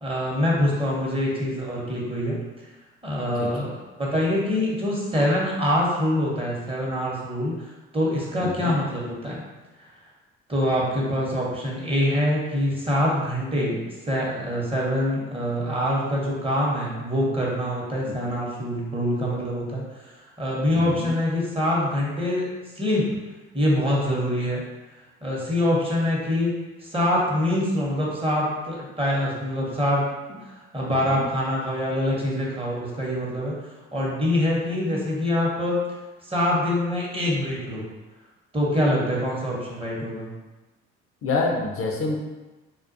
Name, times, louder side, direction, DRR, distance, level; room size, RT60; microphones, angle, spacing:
voice 1, 0.0-2.4 3.0-3.7 4.0-9.5 9.8-9.9 10.5-22.5 22.8-23.1 23.5-24.6 25.2-26.5 26.8-30.0 30.4-35.8 36.3-37.8 38.5-40.3, left 1 dB, 20° right, -4 dB, 0.8 m, -25 dB
voice 2, 8.4-8.7 18.1-18.2 20.7-21.1 31.2-31.3 41.2-42.1, left 3 dB, 50° left, 0 dB, 0.5 m, -27 dB
2.2 x 2.2 x 2.5 m, 1.1 s
hypercardioid pair, 55°, 30 cm